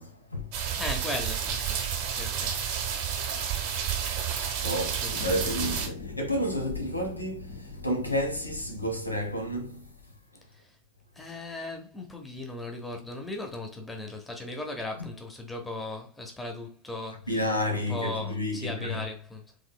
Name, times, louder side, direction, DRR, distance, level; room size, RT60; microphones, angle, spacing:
voice 1, 0.0-0.8 4.6-9.9 17.3-19.0, equal, 85° left, 1.1 m, -31 dB
sound 1, 0.5-5.9, right 8 dB, 45° right, 1.0 m, -30 dB
voice 2, 0.8-1.8 2.1-2.6 4.9-5.3 10.5-10.8 11.1-17.5 17.9-19.5, left 2 dB, 10° left, 1.0 m, -38 dB
sound 2, 5.1-10.1, left 3 dB, 55° left, 1.4 m, -42 dB
4.8 x 3.5 x 2.2 m
figure-of-eight pair, 90°, 0 cm